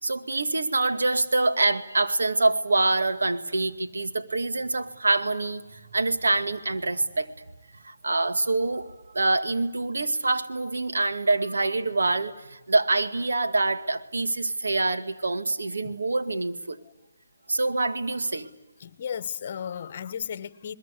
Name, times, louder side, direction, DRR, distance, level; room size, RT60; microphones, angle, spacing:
voice 1, 0.0-7.3 7.8-16.8 17.5-18.5, right 2 dB, 90° right, 8 dB, 2.1 m, -25 dB
voice 2, 18.8-20.7, left 8 dB, 45° left, 16 dB, 1.3 m, -34 dB
28.5 x 21.0 x 8.4 m, 0.95 s
hypercardioid pair, 160°, 0 cm